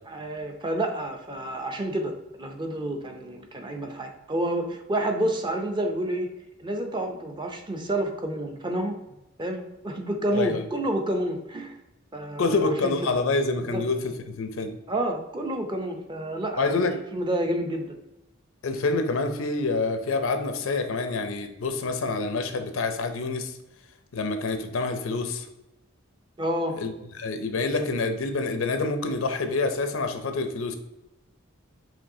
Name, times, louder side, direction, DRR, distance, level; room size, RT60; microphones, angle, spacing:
voice 1, 0.1-2.1 2.4-6.3 6.6-9.0 9.4-11.8 12.1-13.2 13.7-13.8 14.9-16.7 17.1-17.9 26.4-26.8, right 1 dB, 25° right, 3 dB, 0.5 m, -29 dB
voice 2, 10.3-10.7 12.4-14.7 16.6-16.9 18.6-23.6 24.1-25.5 26.8-30.8, left 3 dB, 85° left, 7 dB, 0.6 m, -27 dB
5.1 x 3.1 x 2.7 m, 0.95 s
head